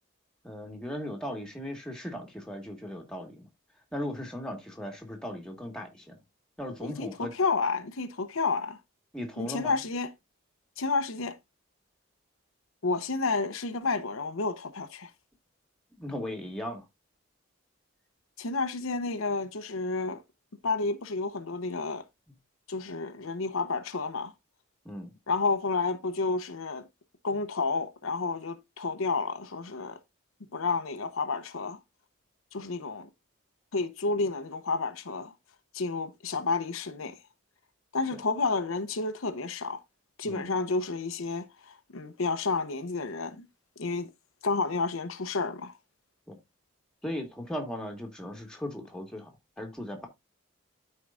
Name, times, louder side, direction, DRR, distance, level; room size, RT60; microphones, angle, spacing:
voice 1, 0.4-3.5 3.9-6.2 6.6-7.3 9.1-9.7 16.0-16.8 24.9-25.1 38.1-38.2 40.2-40.5 46.3-46.4 47.0-49.3 49.6-50.1, left 1 dB, 5° left, 1.7 m, -37 dB
voice 2, 6.8-8.8 9.4-10.1 10.8-11.4 12.8-15.1 18.4-20.2 20.6-22.0 22.7-24.3 25.3-26.9 27.2-30.0 30.5-31.8 32.5-33.1 33.7-35.3 35.7-37.2 37.9-39.8 40.2-43.5 43.8-44.1 44.4-45.8, left 3 dB, 80° left, 0.8 m, -30 dB
13.0 x 4.6 x 2.5 m
head